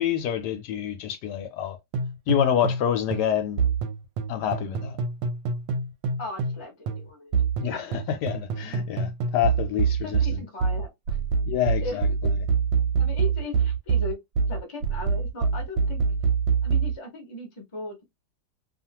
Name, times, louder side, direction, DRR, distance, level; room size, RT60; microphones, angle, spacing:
voice 1, 0.0-1.8 2.3-3.6 4.3-5.0 7.6-10.2 11.5-12.1, left 10 dB, 75° left, 1.1 m, -27 dB
sound 1, 1.9-2.9 3.1-6.6 6.9-16.9, right 5 dB, 90° right, 1.3 m, -25 dB
voice 2, 6.2-7.4 7.7-8.0 10.0-11.2 11.8-12.0 13.0-14.2 14.5-16.0 16.6-18.0, left 2 dB, 30° left, 0.5 m, -37 dB
2.8 x 2.4 x 2.8 m
omnidirectional pair, 2.0 m